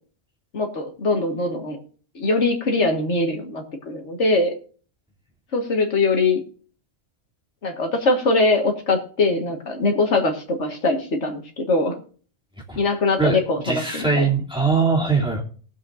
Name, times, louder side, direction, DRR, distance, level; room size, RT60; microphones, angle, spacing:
voice 1, 0.5-1.8 2.2-4.5 5.5-6.4 7.6-12.0 12.8-14.3, left 3 dB, 70° left, 3 dB, 2.0 m, -22 dB
voice 2, 13.2-15.4, right 4 dB, 5° right, -3 dB, 2.8 m, -21 dB
20.0 x 7.5 x 2.6 m, 0.42 s
omnidirectional pair, 1.2 m